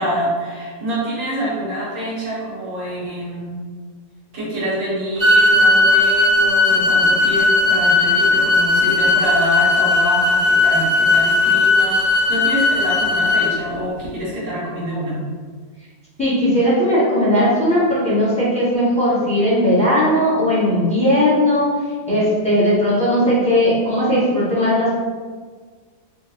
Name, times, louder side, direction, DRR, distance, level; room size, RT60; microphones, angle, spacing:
voice 1, 0.0-3.6 4.3-15.2, equal, 70° right, -7 dB, 1.6 m, -26 dB
sound 1, 5.2-13.5, left 2 dB, 35° right, 1.0 m, -16 dB
voice 2, 16.2-21.7 22.1-24.9, equal, 5° left, -9 dB, 0.9 m, -17 dB
3.6 x 2.2 x 3.0 m, 1.5 s
omnidirectional pair, 1.6 m